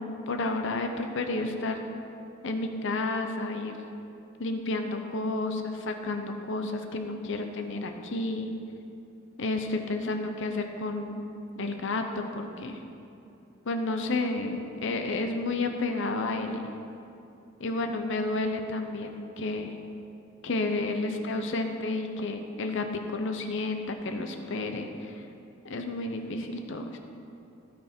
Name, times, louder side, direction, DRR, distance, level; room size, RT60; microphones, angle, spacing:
voice 1, 0.0-1.8 2.4-3.7 4.4-8.5 9.4-11.2 11.6-12.8 13.7-16.7 17.6-19.7 20.4-25.3 25.6-27.0, left 2 dB, 65° left, 5 dB, 0.7 m, -31 dB
17.0 x 6.0 x 4.4 m, 2.8 s
head